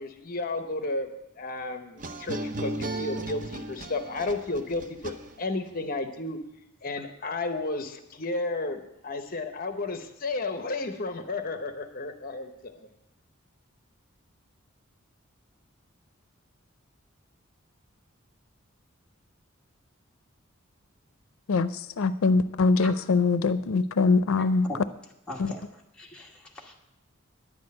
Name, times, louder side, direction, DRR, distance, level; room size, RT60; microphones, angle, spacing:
voice 1, 0.0-6.4 6.8-12.9, left 2 dB, 45° left, 7 dB, 0.8 m, -33 dB
sound 1, 2.0-5.7, right 2 dB, 40° right, 0.7 m, -35 dB
voice 2, 21.5-24.7 25.4-25.5, left 4 dB, 90° left, 13 dB, 0.5 m, -23 dB
voice 3, 25.3-25.6 26.0-26.7, left 1 dB, 5° left, -2 dB, 1.4 m, -39 dB
10.0 x 6.2 x 8.6 m, 0.85 s
head